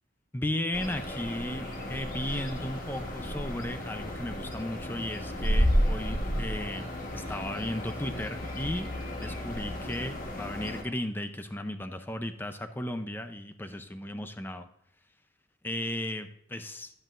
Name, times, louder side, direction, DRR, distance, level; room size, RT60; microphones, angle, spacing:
voice 1, 0.3-6.9 7.1-14.7 15.6-16.9, left 1 dB, 10° left, 8 dB, 0.5 m, -35 dB
sound 1, 0.7-10.8, equal, 45° left, 1.3 m, -32 dB
11.0 x 7.8 x 2.5 m, 0.77 s
head